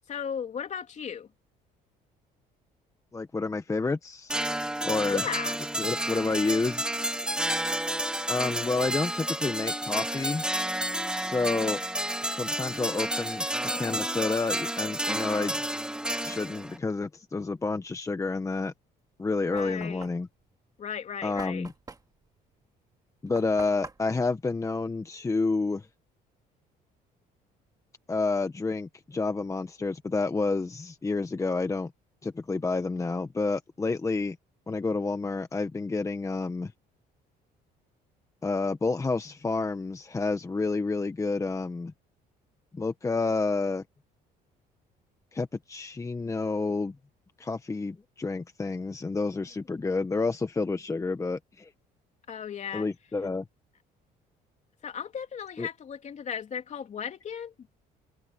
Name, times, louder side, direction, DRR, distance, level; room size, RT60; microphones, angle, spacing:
voice 1, 0.1-1.3 5.1-5.6 19.5-20.1 20.8-21.7 52.3-52.9 54.8-57.7, left 7 dB, 45° left, 3.0 m, -36 dB
voice 2, 3.1-4.3 4.8-5.2 5.8-6.9 8.3-10.4 11.2-11.8 12.2-13.4 13.7-15.6 16.2-18.7 19.2-20.3 21.2-21.7 23.2-25.9 28.1-31.9 32.2-34.4 34.7-36.7 38.4-41.9 42.7-43.8 45.3-46.9 47.4-51.7 52.7-53.4 55.6-55.7, left 3 dB, 20° left, 1.2 m, -29 dB
sound 1, 4.3-16.8, right 1 dB, 5° right, 1.9 m, -31 dB
Knock, 19.0-25.5, right 3 dB, 20° right, 2.2 m, -48 dB
cardioid pair, 110°, 17 cm